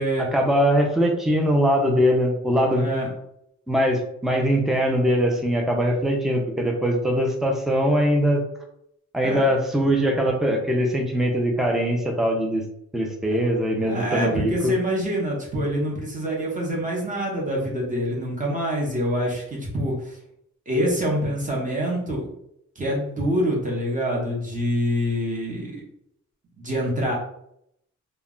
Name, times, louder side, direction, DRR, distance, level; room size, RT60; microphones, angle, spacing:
voice 1, 0.3-2.9 3.7-8.4 9.1-12.6 12.9-14.7, equal, ahead, 2 dB, 0.3 m, -21 dB
voice 2, 2.7-3.1 9.2-9.4 13.8-20.2 20.7-22.3 22.8-25.8 26.6-27.1, equal, 25° right, -3 dB, 0.8 m, -26 dB
2.2 x 2.0 x 3.6 m, 0.74 s
wide cardioid pair, 160°, 31 cm